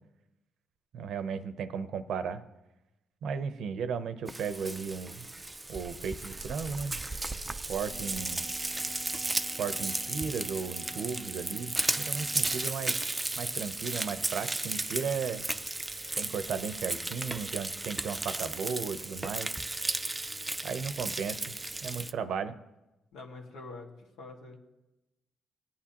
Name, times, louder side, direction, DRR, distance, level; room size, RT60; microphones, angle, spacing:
voice 1, 0.9-2.4 3.2-5.2 5.7-7.0 7.7-8.5 9.6-13.1 13.4-15.5 16.2-19.5 20.6-21.5 21.8-22.6, right 6 dB, 75° right, 11 dB, 0.7 m, -35 dB
Frying (food), 4.3-22.1, right 2 dB, 15° right, 0.4 m, -35 dB
Wind instrument woodwind instrument, 7.7-12.8, left 1 dB, 20° left, 1.1 m, -51 dB
voice 2, 23.1-24.6, left 3 dB, 85° left, 0 dB, 1.7 m, -45 dB
17.5 x 8.6 x 2.9 m, 0.98 s
cardioid pair, 90°, 0 cm